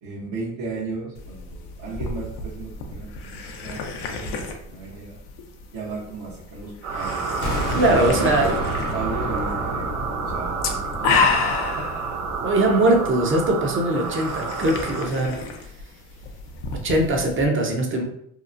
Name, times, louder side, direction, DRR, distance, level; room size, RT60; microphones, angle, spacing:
voice 1, 0.0-3.4 3.6-5.2 5.7-8.6 8.9-12.0, right 3 dB, 60° right, -7 dB, 0.9 m, -35 dB
sound 1, 1.1-17.4, left 4 dB, 70° left, 0.6 m, -31 dB
sound 2, 6.8-15.1, right 5 dB, 90° right, 0.6 m, -30 dB
sound 3, 7.4-13.2, equal, 90° left, 0.9 m, -31 dB
voice 2, 7.7-8.6 12.4-15.4 16.7-18.0, right 1 dB, 30° right, 2 dB, 0.6 m, -21 dB
2.9 x 2.0 x 2.4 m, 0.71 s
supercardioid pair, 85°, 40 cm